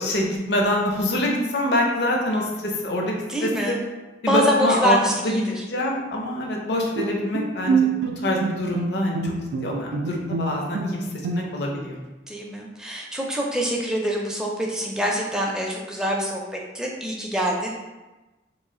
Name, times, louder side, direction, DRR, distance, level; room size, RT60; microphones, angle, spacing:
voice 1, 0.0-3.1 3.4-3.8 4.2-5.0 5.2-7.9 8.2-12.0, left 1 dB, 65° left, 0 dB, 0.5 m, -25 dB
voice 2, 3.3-3.8 4.3-5.6 12.3-17.7, equal, 5° right, -2 dB, 0.4 m, -25 dB
Bowed string instrument, 7.0-11.8, right 5 dB, 85° right, 0.3 m, -27 dB
3.1 x 2.3 x 3.7 m, 1.1 s
head